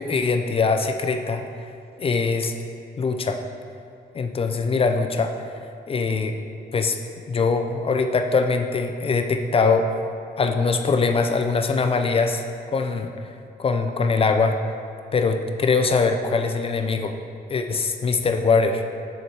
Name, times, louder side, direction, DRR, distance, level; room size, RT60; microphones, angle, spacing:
voice 1, 0.0-1.4 2.0-2.5 3.0-3.4 4.1-5.3 5.9-6.4 6.7-7.0 7.3-9.9 10.4-12.4 12.7-13.1 13.6-14.6 15.1-17.2 17.5-18.8, left 4 dB, 30° left, 6 dB, 0.4 m, -22 dB
6.4 x 4.3 x 4.5 m, 2.5 s
cardioid pair, 115°, 18 cm